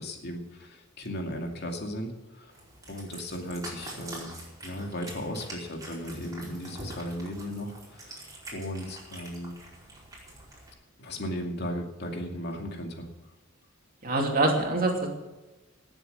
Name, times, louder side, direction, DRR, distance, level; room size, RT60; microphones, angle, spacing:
voice 1, 0.0-2.5 2.9-4.3 4.6-8.2 8.5-9.5 11.0-13.1, equal, 55° left, 2 dB, 2.4 m, -36 dB
Cat, 2.5-10.7, right 1 dB, 20° right, 4.7 m, -45 dB
voice 2, 14.0-15.1, right 2 dB, 45° right, 1 dB, 2.8 m, -25 dB
18.0 x 7.8 x 6.6 m, 1.1 s
head